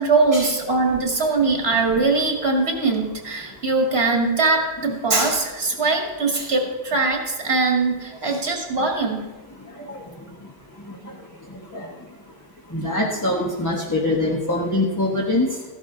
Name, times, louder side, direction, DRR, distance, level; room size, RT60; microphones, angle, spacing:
voice 1, 0.0-9.2 9.8-10.0, right 3 dB, 85° right, 2 dB, 2.3 m, -21 dB
voice 2, 12.7-15.6, left 2 dB, 20° left, -2 dB, 1.3 m, -24 dB
14.5 x 11.5 x 3.9 m, 1.3 s
omnidirectional pair, 1.0 m